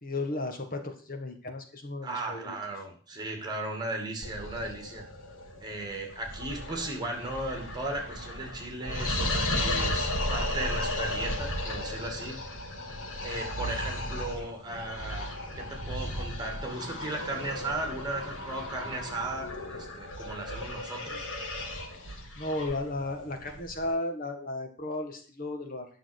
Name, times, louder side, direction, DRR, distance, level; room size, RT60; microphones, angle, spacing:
voice 1, 0.0-2.5 22.4-25.9, left 2 dB, 45° left, 5 dB, 1.7 m, -34 dB
voice 2, 2.0-5.0 5.6-12.4 13.2-15.3 15.6-21.3, right 2 dB, 20° right, 3 dB, 2.5 m, -36 dB
sound 1, 4.2-23.9, left 1 dB, 80° left, 2.2 m, -35 dB
10.0 x 6.4 x 6.5 m, 0.43 s
head